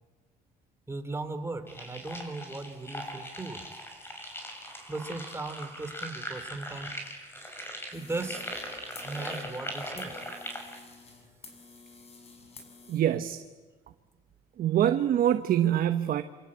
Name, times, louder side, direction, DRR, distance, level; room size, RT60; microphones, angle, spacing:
voice 1, 0.9-3.6 4.9-6.9 7.9-8.6 9.0-10.1, right 3 dB, 15° right, 8 dB, 3.1 m, -37 dB
sound 1, 1.7-10.8, equal, 15° left, 6.5 m, -40 dB
sound 2, 7.9-13.0, left 4 dB, 35° left, 6.3 m, -51 dB
voice 2, 12.9-13.4 14.6-16.2, right 11 dB, 60° right, 9 dB, 1.1 m, -25 dB
27.5 x 24.0 x 8.7 m, 1.3 s
cardioid pair, 110°, 17 cm